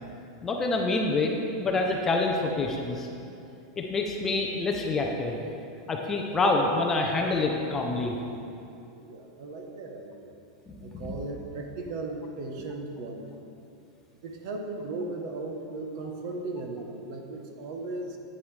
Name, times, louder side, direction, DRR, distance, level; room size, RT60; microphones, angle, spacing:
voice 1, 0.4-3.1 3.8-5.4 5.9-8.1 10.7-11.1, left 3 dB, 15° left, 1 dB, 0.5 m, -27 dB
voice 2, 9.0-10.4 10.8-13.4 14.2-18.2, right 2 dB, 45° right, 3 dB, 0.9 m, -37 dB
9.4 x 8.7 x 3.2 m, 2.7 s
supercardioid pair, 170°, 3 cm